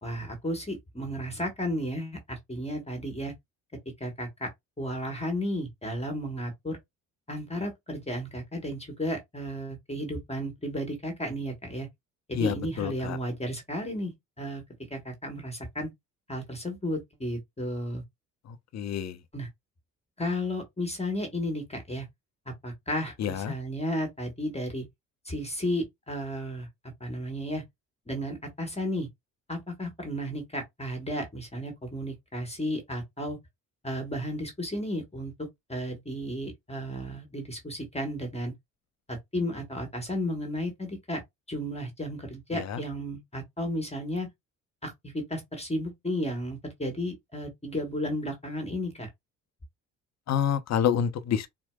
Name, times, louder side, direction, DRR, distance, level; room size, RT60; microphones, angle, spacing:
voice 1, 0.0-3.3 3.8-4.5 4.8-6.8 7.3-11.9 12.3-14.1 14.4-14.6 14.9-15.9 16.3-18.0 19.3-19.5 20.2-22.1 22.6-24.8 25.2-26.7 27.0-27.6 28.1-29.1 29.5-33.4 33.8-38.5 39.1-41.2 41.5-44.3 44.8-49.1, equal, 15° left, 1.2 m, -33 dB
voice 2, 12.3-13.2 18.5-19.2 23.2-23.5 42.5-42.8 50.3-51.5, left 8 dB, 40° left, 0.6 m, -28 dB
4.4 x 2.0 x 2.2 m
hypercardioid pair, 50°, 41 cm